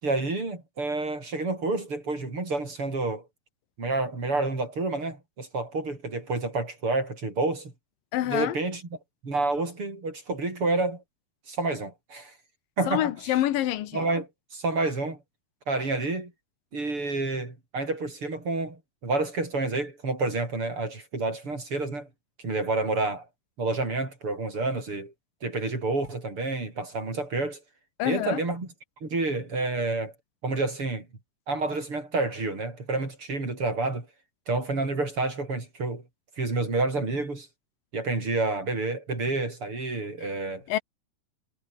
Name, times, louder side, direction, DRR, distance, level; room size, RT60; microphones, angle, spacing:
voice 1, 0.0-3.2 3.8-7.7 8.3-8.8 9.2-11.0 11.5-12.3 12.8-13.1 13.9-15.2 15.7-16.3 16.7-22.1 22.4-23.3 23.6-25.1 25.4-27.6 28.0-28.7 29.0-30.1 30.4-31.1 31.5-34.1 34.5-36.0 36.4-37.5 37.9-40.7, right 3 dB, 40° right, 6.8 m, -29 dB
voice 2, 8.1-8.6 12.9-14.1 28.0-28.4 40.7-40.8, left 13 dB, 80° left, 2.9 m, -26 dB
omnidirectional pair, 3.9 m